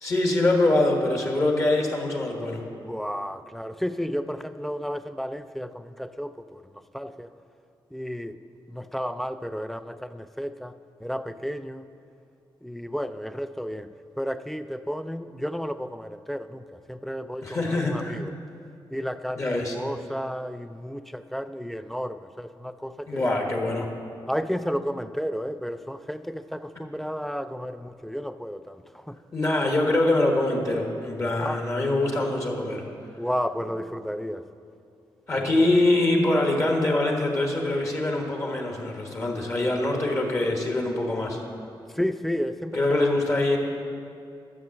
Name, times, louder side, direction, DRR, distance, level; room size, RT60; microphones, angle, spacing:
voice 1, 0.0-2.6 17.4-18.2 19.4-19.7 23.1-23.9 29.3-32.8 35.3-41.4 42.7-43.6, left 2 dB, 35° left, 1 dB, 1.3 m, -24 dB
voice 2, 2.8-6.7 6.9-7.3 7.9-11.9 12.6-18.3 18.9-23.3 24.3-29.2 31.3-31.6 33.2-34.5 35.3-35.7 41.9-43.2, equal, ahead, 12 dB, 0.3 m, -32 dB
12.5 x 6.6 x 7.5 m, 2.5 s
wide cardioid pair, 155°, 9 cm